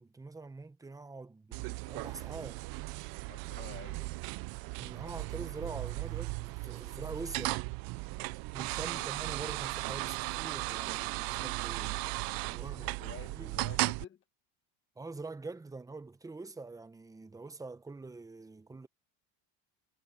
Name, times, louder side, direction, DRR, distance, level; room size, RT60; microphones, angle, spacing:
voice 1, 0.0-2.6 4.8-7.6 8.5-12.0 12.5-13.0 13.3-13.6 15.0-18.9, right 3 dB, 10° right, 0.9 m, -45 dB
sound 1, 1.5-14.0, right 25 dB, 60° right, 0.5 m, -36 dB
voice 2, 3.3-4.1 8.7-9.1 11.8-11.9 12.6-14.2, left 9 dB, 30° left, 1.3 m, -51 dB
cardioid pair, 145°, 40 cm